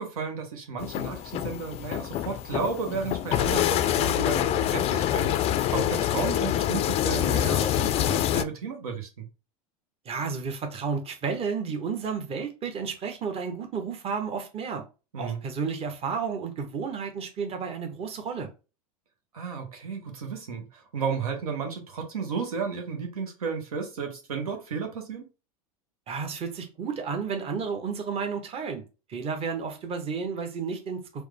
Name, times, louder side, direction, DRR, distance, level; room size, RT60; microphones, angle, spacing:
voice 1, 0.0-5.3 5.7-9.3 15.1-15.4 19.3-25.3, right 5 dB, 75° right, 1.0 m, -33 dB
sound 1, 0.8-8.4, left 11 dB, 35° left, 0.4 m, -26 dB
voice 2, 10.0-14.8 15.2-18.5 26.1-28.8 29.1-31.2, right 5 dB, 30° right, 1.0 m, -32 dB
4.8 x 2.1 x 3.3 m
hypercardioid pair, 85°, 19 cm